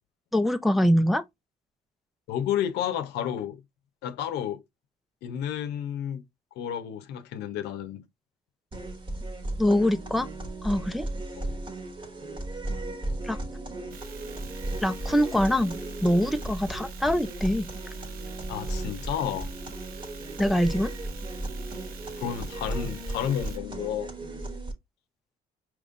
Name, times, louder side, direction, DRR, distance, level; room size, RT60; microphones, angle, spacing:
voice 1, 0.3-1.2 9.6-10.3 10.6-11.1 13.2-13.4 14.8-17.7 20.4-20.9, equal, ahead, 0.4 m, -24 dB
voice 2, 2.3-3.6 4.0-4.6 5.2-6.2 6.6-8.0 11.4-11.5 18.5-19.5 22.2-24.1, left 10 dB, 80° left, 0.7 m, -31 dB
sound 1, 8.7-24.7, right 2 dB, 30° right, 1.1 m, -35 dB
sound 2, 13.9-23.6, right 7 dB, 60° right, 0.8 m, -47 dB
5.2 x 3.0 x 2.5 m
cardioid pair, 110°, 17 cm